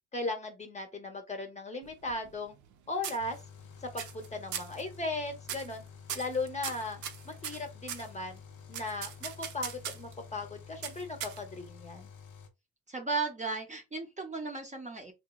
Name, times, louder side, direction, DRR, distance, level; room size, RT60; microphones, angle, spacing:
voice 1, 0.1-2.6 2.9-3.4 3.8-5.8 6.1-7.0 7.2-8.4 8.7-12.1, left 2 dB, 25° left, 0.7 m, -37 dB
sound 1, 1.8-2.7 3.0-3.6 4.0-4.3 4.5-4.8 5.4-5.8 6.1-8.1 8.7-10.1 10.8-11.7, right 8 dB, 70° right, 0.5 m, -39 dB
sound 2, 3.2-12.5, left 6 dB, 80° left, 0.6 m, -50 dB
voice 2, 12.9-15.1, right 4 dB, 25° right, 0.6 m, -35 dB
2.9 x 2.1 x 2.3 m
cardioid pair, 90°, 30 cm